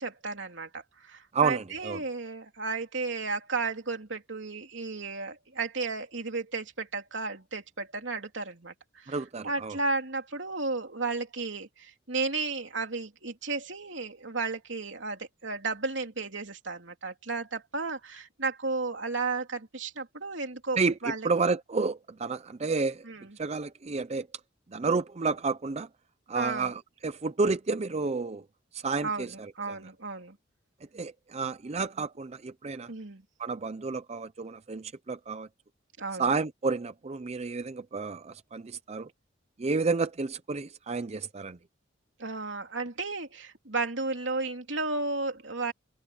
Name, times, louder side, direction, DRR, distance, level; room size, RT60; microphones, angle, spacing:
voice 1, 0.0-21.3 23.0-23.4 26.3-26.7 29.0-30.4 32.9-33.2 36.0-36.3 42.2-45.7, right 3 dB, 70° right, 3.3 m, -33 dB
voice 2, 1.3-2.0 9.1-9.8 20.8-23.0 23.4-24.3 24.7-25.9 26.3-28.4 28.7-29.8 30.9-32.9 33.4-35.5 36.2-39.1 39.6-41.6, right 4 dB, 35° right, 0.5 m, -30 dB
head